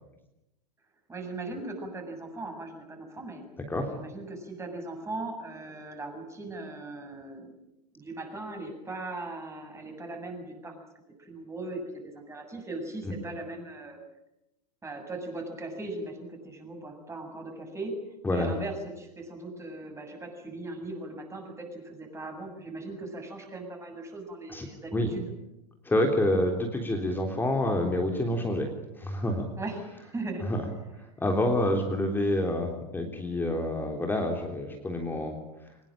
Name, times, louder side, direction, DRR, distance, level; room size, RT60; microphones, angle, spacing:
voice 1, 1.1-3.4 3.9-7.5 7.9-10.8 11.2-14.0 14.8-18.0 18.3-25.2 29.6-30.5, right 2 dB, 15° right, 4 dB, 7.6 m, -39 dB
voice 2, 25.8-28.7 29.0-29.5 30.5-30.6 31.0-35.4, left 1 dB, 10° left, 3 dB, 3.6 m, -27 dB
24.5 x 21.0 x 8.9 m, 0.89 s
figure-of-eight pair, 95°, 21 cm